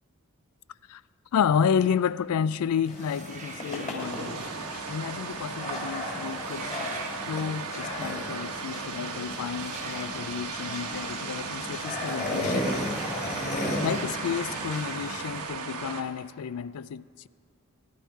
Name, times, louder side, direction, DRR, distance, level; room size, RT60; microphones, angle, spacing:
voice 1, 1.3-4.5 4.9-7.0 7.3-12.7 13.8-17.3, left 7 dB, 75° left, 0.4 m, -30 dB
sound 1, 2.9-15.4, left 1 dB, 35° left, 2.7 m, -35 dB
sound 2, 2.9-4.0 6.3-7.2 9.5-10.1 12.5-12.6 12.9-13.1 13.7-14.1, right 5 dB, 35° right, 1.1 m, -43 dB
sound 3, 4.0-16.0, right 5 dB, 85° right, 1.2 m, -36 dB
17.5 x 12.0 x 4.6 m
head